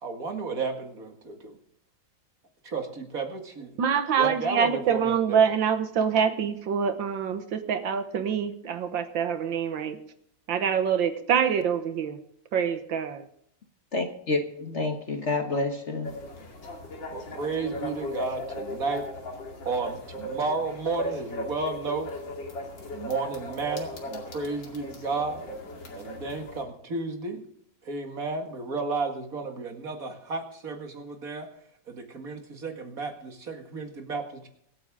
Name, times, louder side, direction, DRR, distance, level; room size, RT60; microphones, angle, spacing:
voice 1, 0.0-1.6 2.6-3.8 4.2-5.4 17.1-19.1 19.7-22.1 22.9-25.4 26.0-27.5 27.8-31.5 31.9-34.5, right 3 dB, 45° right, 2.3 m, -32 dB
voice 2, 3.8-10.0 10.5-12.2 12.5-13.3, right 7 dB, 75° right, 1.8 m, -25 dB
voice 3, 13.9-16.2, left 3 dB, 40° left, 1.4 m, -29 dB
sound 1, 16.0-26.6, left 1 dB, 70° left, 3.0 m, -37 dB
24.5 x 8.9 x 3.7 m
omnidirectional pair, 2.1 m